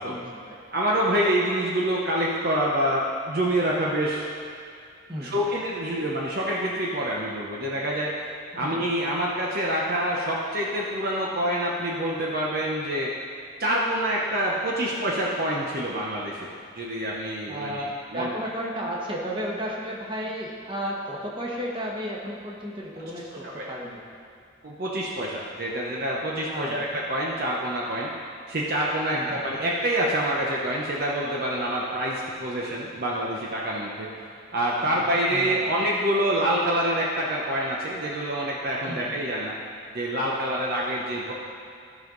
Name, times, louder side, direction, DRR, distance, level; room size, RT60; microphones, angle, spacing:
voice 1, 0.0-0.6 5.1-5.5 8.5-8.8 17.5-24.0 26.5-26.8 29.1-29.4 34.8-35.0 35.3-35.7 38.8-39.1, equal, 25° right, -3 dB, 1.4 m, -33 dB
voice 2, 0.7-4.3 5.2-8.3 8.5-13.1 13.6-18.3 23.0-23.1 23.4-23.7 24.6-28.1 28.5-39.5 39.9-41.3, right 1 dB, 50° right, -4 dB, 0.9 m, -26 dB
15.5 x 5.4 x 3.9 m, 2.3 s
head